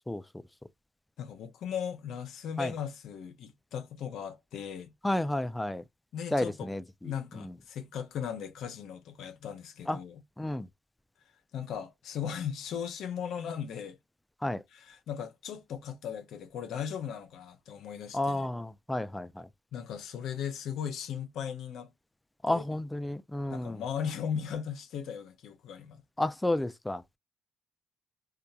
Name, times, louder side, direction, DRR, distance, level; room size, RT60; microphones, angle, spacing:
voice 1, 0.1-0.4 2.6-2.7 5.0-5.8 6.3-7.5 9.9-10.0 10.4-10.7 14.4-14.6 18.1-19.5 22.4-23.8 26.2-27.0, left 1 dB, 10° left, 0.3 m, -32 dB
voice 2, 1.2-4.9 6.1-6.7 7.0-10.2 11.5-14.0 14.9-18.5 19.7-21.9 22.5-22.6 23.5-26.0, left 8 dB, 80° left, 0.6 m, -37 dB
2.8 x 2.2 x 2.3 m
cardioid pair, 90°, 0 cm